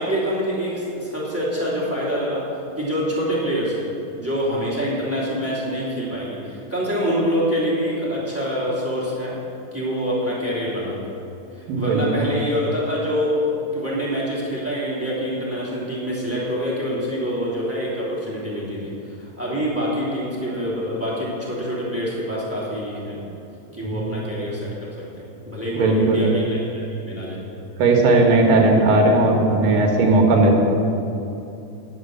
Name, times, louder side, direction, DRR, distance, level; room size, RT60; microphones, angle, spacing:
voice 1, 0.0-2.5 2.8-3.9 4.1-9.4 9.7-11.1 11.5-23.2 23.7-27.4, equal, 5° right, -7 dB, 2.6 m, -26 dB
voice 2, 11.7-12.2 23.9-24.1 25.8-26.3 27.8-30.6, right 2 dB, 70° right, 1 dB, 3.1 m, -17 dB
11.0 x 7.2 x 7.8 m, 2.8 s
omnidirectional pair, 4.1 m